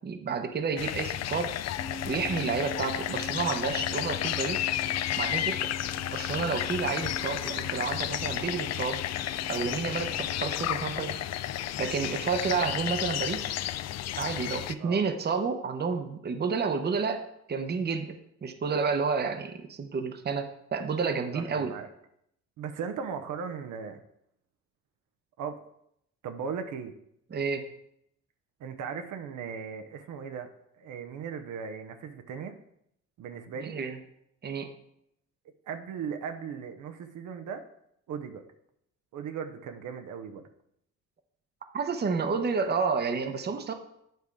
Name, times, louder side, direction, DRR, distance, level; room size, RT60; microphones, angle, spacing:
voice 1, 0.0-1.5 2.1-4.7 5.2-5.7 6.1-9.0 9.5-11.2 11.8-13.5 14.2-21.7 27.3-27.6 33.6-34.0 34.4-34.7 41.7-43.7, right 5 dB, 35° right, 7 dB, 0.8 m, -30 dB
sound 1, 0.8-14.7, left 12 dB, 60° left, 0.4 m, -32 dB
sound 2, 1.8-10.6, right 1 dB, 30° left, 1.7 m, -44 dB
voice 2, 21.3-21.9 22.6-24.0 25.4-25.6 26.2-26.9 28.6-30.5 30.8-32.5 33.2-33.7 35.7-37.6 38.1-38.4 39.1-40.4, right 6 dB, 80° right, 6 dB, 0.8 m, -37 dB
9.2 x 3.5 x 4.8 m, 0.75 s
cardioid pair, 90°, 30 cm